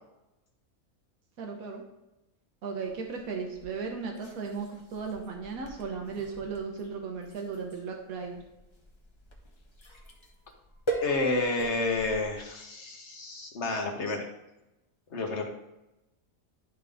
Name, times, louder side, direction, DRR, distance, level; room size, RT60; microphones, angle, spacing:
voice 1, 1.4-1.8 2.6-8.4, right 5 dB, 85° right, 2 dB, 1.4 m, -36 dB
sound 1, 2.8-12.6, right 2 dB, 25° left, 1.0 m, -42 dB
voice 2, 11.0-14.2 15.1-15.5, left 3 dB, 55° left, 2 dB, 1.4 m, -30 dB
11.0 x 3.8 x 3.5 m, 0.95 s
omnidirectional pair, 1.5 m